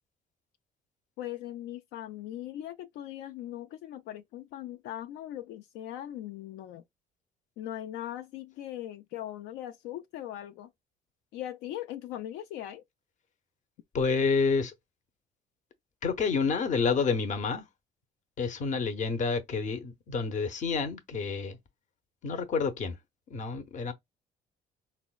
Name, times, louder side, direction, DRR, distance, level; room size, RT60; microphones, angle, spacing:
voice 1, 1.2-6.8 7.6-10.7 11.3-12.8, left 12 dB, 90° left, 0.4 m, -40 dB
voice 2, 13.9-14.7 16.0-17.6 18.4-21.6 22.2-23.0 23.3-23.9, left 5 dB, 45° left, 0.7 m, -29 dB
4.0 x 2.1 x 2.3 m
cardioid pair, 110°, 17 cm